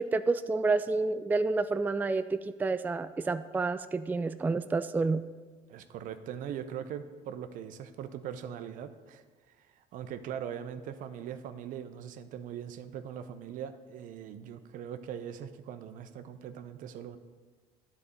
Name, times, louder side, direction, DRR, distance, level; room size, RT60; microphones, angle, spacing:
voice 1, 0.0-5.3, right 3 dB, 10° right, 11 dB, 0.3 m, -29 dB
voice 2, 5.7-17.2, right 9 dB, 65° right, 10 dB, 0.7 m, -41 dB
9.8 x 4.2 x 6.4 m, 1.4 s
supercardioid pair, 75°, 15 cm